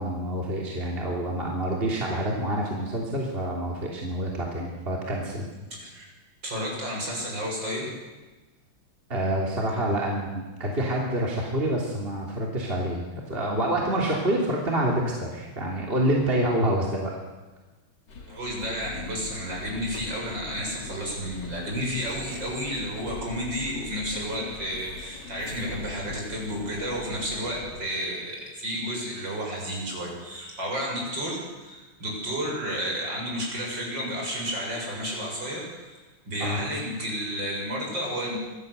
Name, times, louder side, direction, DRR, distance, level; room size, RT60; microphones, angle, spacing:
voice 1, 0.0-5.5 9.1-17.2 36.4-36.6, right 1 dB, 25° right, -1 dB, 3.3 m, -27 dB
voice 2, 6.4-7.9 18.3-36.0 36.3-38.4, equal, 55° right, -2 dB, 8.0 m, -31 dB
sound 1, 18.1-27.9, left 4 dB, 55° left, 2.9 m, -42 dB
25.0 x 16.5 x 8.2 m, 1.2 s
omnidirectional pair, 2.4 m